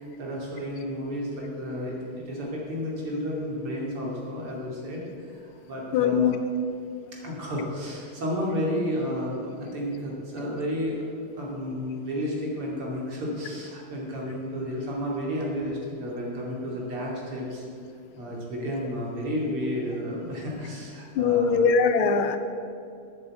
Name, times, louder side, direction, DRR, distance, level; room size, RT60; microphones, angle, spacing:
voice 1, 0.0-5.0 5.3-5.4 5.7-6.4 7.2-11.0 11.4-17.6 18.1-21.6 22.0-22.1, equal, 85° right, -3 dB, 3.5 m, -32 dB
voice 2, 5.9-6.4 21.2-22.4, left 6 dB, 75° left, 9 dB, 1.6 m, -21 dB
8.9 x 7.8 x 8.5 m, 2.3 s
omnidirectional pair, 2.4 m